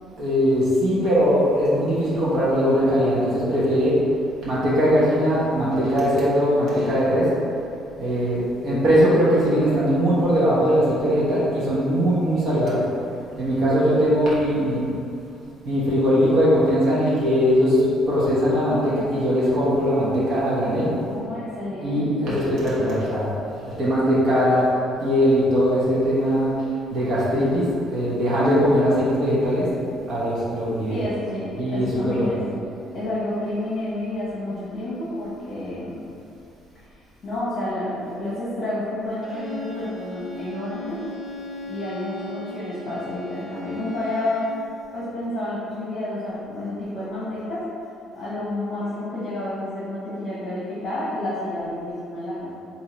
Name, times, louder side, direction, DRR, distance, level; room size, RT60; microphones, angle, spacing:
voice 1, 0.2-4.0 4.4-7.3 8.0-12.8 13.4-14.9 15.6-20.9 21.8-23.3 23.7-24.7 25.0-26.5 26.9-27.6 27.9-29.7 30.1-31.0 31.6-32.3, equal, 45° right, -9 dB, 1.2 m, -20 dB
voice 2, 20.8-22.6 30.9-32.4 32.9-36.0 36.7-37.0 37.2-41.1 41.7-44.4 44.9-47.7 48.1-52.5, left 1 dB, 30° left, -9 dB, 1.1 m, -30 dB
Bowed string instrument, 39.2-44.7, left 2 dB, 10° right, 1.3 m, -37 dB
3.7 x 2.8 x 4.3 m, 2.6 s
cardioid pair, 180°, 0 cm